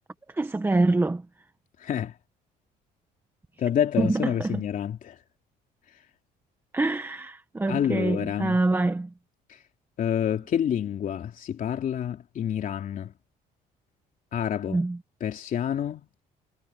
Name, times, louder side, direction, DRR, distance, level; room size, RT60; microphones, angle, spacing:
voice 1, 0.3-1.2 4.0-4.6 6.7-9.1 14.7-15.0, right 2 dB, 15° right, 1.3 m, -25 dB
voice 2, 1.8-2.1 3.6-5.2 7.7-8.6 9.5-9.6 10.0-13.1 14.3-14.8 15.2-16.0, left 9 dB, 55° left, 3.3 m, -28 dB
cardioid pair, 110°, 17 cm